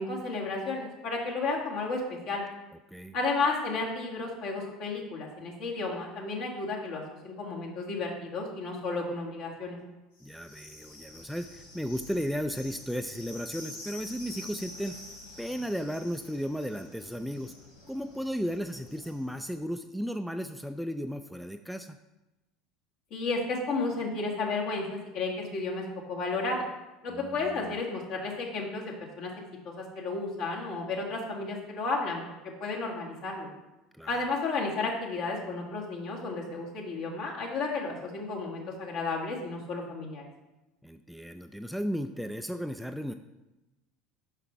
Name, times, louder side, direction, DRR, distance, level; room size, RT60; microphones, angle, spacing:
voice 1, 0.0-2.4 3.1-9.8 23.1-25.8 26.1-26.7 27.0-29.3 29.7-32.2 32.6-33.5 34.1-40.2, left 3 dB, 60° left, -2 dB, 1.8 m, -32 dB
sound 1, 10.2-19.5, left 2 dB, 80° left, 1.7 m, -48 dB
voice 2, 10.2-15.0 15.4-17.5 17.9-22.0 27.1-27.7 34.0-34.2 40.8-43.1, equal, ahead, 7 dB, 0.4 m, -35 dB
5.9 x 5.8 x 4.6 m, 1.0 s
hypercardioid pair, 70°, 0 cm